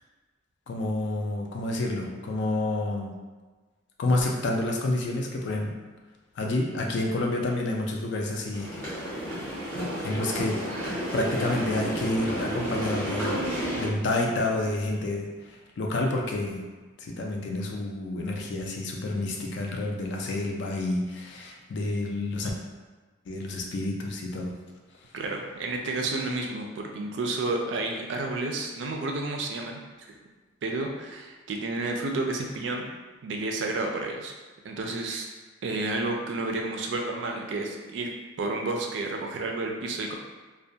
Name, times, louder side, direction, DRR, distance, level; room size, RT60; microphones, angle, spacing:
voice 1, 0.7-3.2 4.0-5.7 6.4-8.7 10.0-10.6 11.1-13.4 13.8-16.6 17.0-22.5 23.3-24.5, left 2 dB, 60° left, 0 dB, 0.4 m, -29 dB
sound 1, 8.5-13.9, equal, 10° left, 0.6 m, -31 dB
voice 2, 25.1-29.8 30.6-32.9 33.2-34.3 34.6-35.3 35.6-38.1 38.4-40.2, right 2 dB, 60° right, 2 dB, 0.3 m, -31 dB
2.2 x 2.1 x 2.6 m, 1.3 s
head